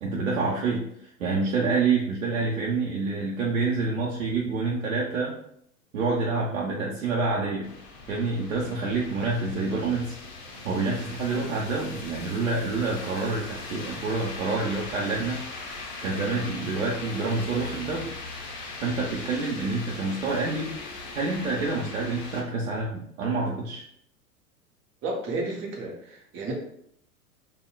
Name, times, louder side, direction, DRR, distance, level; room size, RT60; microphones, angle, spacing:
voice 1, 0.0-5.3 5.9-7.7 8.1-10.2 10.6-15.4 16.0-18.1 18.8-20.8 21.1-23.8, right 3 dB, 60° right, -3 dB, 0.8 m, -27 dB
sound 1, 7.6-22.4, left 3 dB, 35° left, 0.7 m, -39 dB
voice 2, 25.0-26.5, right 2 dB, 25° right, -1 dB, 0.8 m, -32 dB
5.2 x 2.2 x 2.3 m, 0.70 s
figure-of-eight pair, 95°, 46 cm